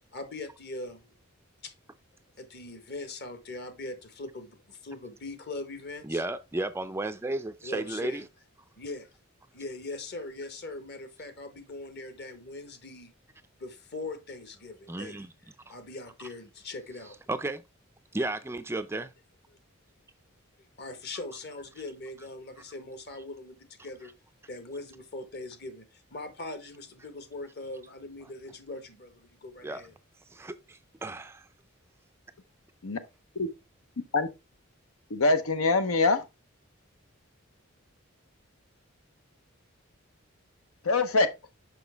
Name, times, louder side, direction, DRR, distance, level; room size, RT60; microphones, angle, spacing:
voice 1, 0.1-1.1 1.6-1.7 2.4-6.2 7.6-8.2 8.8-9.1 9.5-13.1 13.6-15.2 15.6-17.2 20.8-24.1 24.5-29.9, left 2 dB, 50° left, 1.3 m, -41 dB
voice 2, 6.0-8.3 14.9-15.3 15.7-15.8 16.2-16.3 17.3-17.6 18.1-19.1 29.6-29.8 30.3-31.5, right 2 dB, 10° right, 0.3 m, -33 dB
voice 3, 35.1-36.2 40.8-41.3, left 3 dB, 90° left, 0.9 m, -24 dB
6.1 x 5.7 x 3.4 m
head